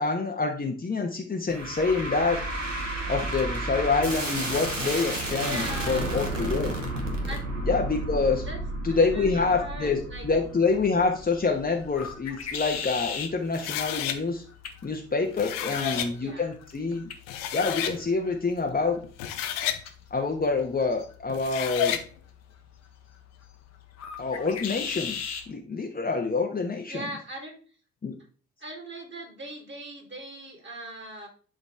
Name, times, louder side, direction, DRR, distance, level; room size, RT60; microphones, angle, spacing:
voice 1, 0.0-2.4 3.1-6.7 7.7-8.4 8.8-14.4 14.8-17.1 17.5-19.0 20.1-22.0 24.2-25.2 25.5-27.0 28.0-28.1, left 4 dB, 25° left, 2 dB, 1.2 m, -27 dB
sound 1, 1.5-12.7, right 1 dB, 90° right, 0.9 m, -32 dB
voice 2, 5.3-6.1 7.3-7.5 8.4-8.6 8.9-10.3 15.6-16.5 26.9-27.6 28.6-31.3, right 1 dB, 30° right, 2 dB, 3.2 m, -39 dB
sound 2, 10.1-25.5, left 6 dB, 45° left, 1.4 m, -41 dB
sound 3, 13.5-14.2 15.2-16.1 16.9-17.0 17.3-18.0 19.0-19.8 21.3-22.0, left 10 dB, 60° left, 0.9 m, -30 dB
11.0 x 4.0 x 3.4 m, 0.39 s
figure-of-eight pair, 45°, 37 cm